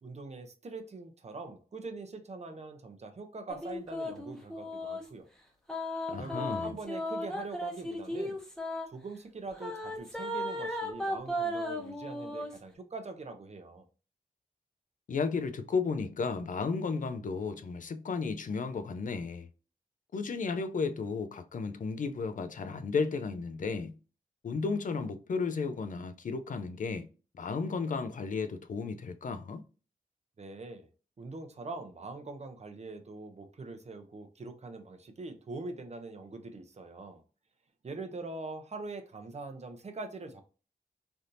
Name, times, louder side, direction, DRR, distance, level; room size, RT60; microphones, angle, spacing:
voice 1, 0.0-5.3 6.2-8.4 8.9-13.8 30.4-30.9 31.2-37.2 37.8-40.4, right 3 dB, 45° right, 0.6 m, -43 dB
sound 1, 3.5-5.1 5.7-8.9 9.6-12.6, left 1 dB, 5° left, 0.9 m, -35 dB
voice 2, 6.1-6.8 15.1-19.5 20.1-24.0 24.4-27.1 27.4-29.6, left 4 dB, 60° left, 0.4 m, -33 dB
3.3 x 2.7 x 2.6 m
cardioid pair, 60°, 15 cm